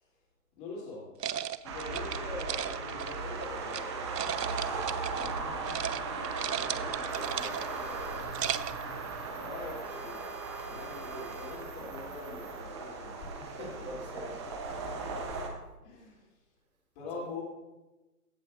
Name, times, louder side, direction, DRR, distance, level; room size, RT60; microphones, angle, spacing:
voice 1, 0.6-1.1 1.6-6.0 6.6-6.9 9.3-10.3 10.6-14.3 14.6-15.0 15.8-16.3 16.9-17.4, left 3 dB, 25° left, -4 dB, 2.9 m, -44 dB
sound 1, 1.2-3.8 4.2-5.4 5.7-6.0 6.2-7.8 8.2-8.8, right 9 dB, 90° right, 0.6 m, -36 dB
sound 2, 1.6-15.5, right 4 dB, 20° right, 0.7 m, -37 dB
voice 2, 6.4-9.8 10.5-11.1 13.5-14.4 15.0-15.3 17.1-17.3, right 2 dB, 65° right, 1 dB, 2.8 m, -48 dB
sound 3, 7.1-12.6, right 3 dB, 5° right, 1.5 m, -50 dB
16.0 x 7.4 x 2.5 m, 1.0 s
figure-of-eight pair, 140°, 47 cm